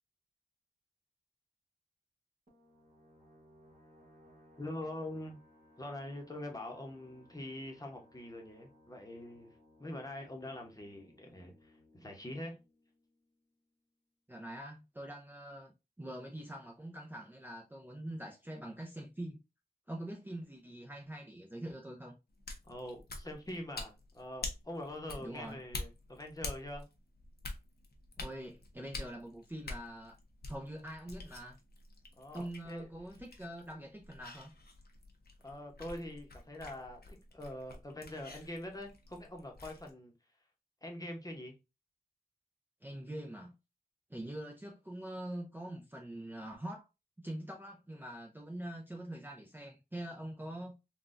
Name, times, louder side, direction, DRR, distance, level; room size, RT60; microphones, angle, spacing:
sound 1, 2.5-13.7, left 1 dB, 55° right, 1.5 m, -64 dB
voice 1, 4.6-5.4 5.8-9.5 9.8-12.6 22.6-26.9 32.2-32.8 35.4-40.1 40.8-41.5, left 1 dB, 20° left, 0.9 m, -44 dB
voice 2, 14.3-19.4 19.9-22.1 25.2-25.6 28.2-30.2 30.4-31.6 32.3-34.5 42.8-43.5 44.1-46.9 47.2-50.8, right 1 dB, 15° right, 0.5 m, -44 dB
sound 2, 22.3-39.9, left 2 dB, 80° left, 0.7 m, -47 dB
3.9 x 2.3 x 2.5 m
wide cardioid pair, 90°, 16 cm